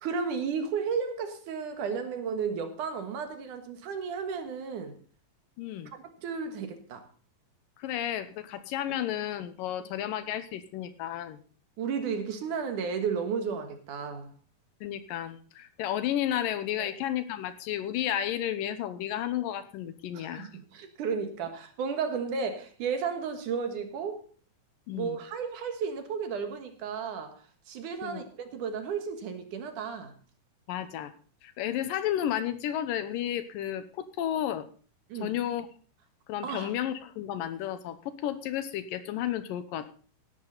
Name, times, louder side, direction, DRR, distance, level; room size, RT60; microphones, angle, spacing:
voice 1, 0.0-4.9 5.9-7.0 11.8-14.3 16.8-16.9 20.1-24.3 24.9-30.1 35.1-35.3 36.4-36.7, right 6 dB, 65° right, 3.0 m, -33 dB
voice 2, 5.6-5.9 7.8-11.4 14.8-20.5 24.9-25.2 28.0-28.2 30.7-31.1 31.4-34.7 35.2-35.7 36.3-38.0 38.2-39.9, left 11 dB, 80° left, 2.6 m, -32 dB
16.5 x 11.0 x 4.0 m
omnidirectional pair, 4.0 m